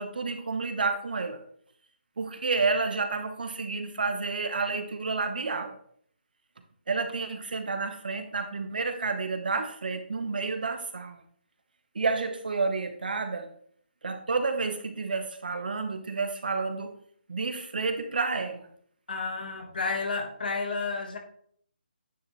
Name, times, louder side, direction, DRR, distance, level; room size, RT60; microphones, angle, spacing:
voice 1, 0.0-1.4 2.2-5.7 6.9-11.2 11.9-13.5 14.0-16.9 17.3-18.7, right 4 dB, 55° right, 8 dB, 0.9 m, -30 dB
voice 2, 19.1-21.2, left 4 dB, 55° left, 3 dB, 1.6 m, -31 dB
9.4 x 4.3 x 3.2 m, 0.63 s
hypercardioid pair, 175°, 6 cm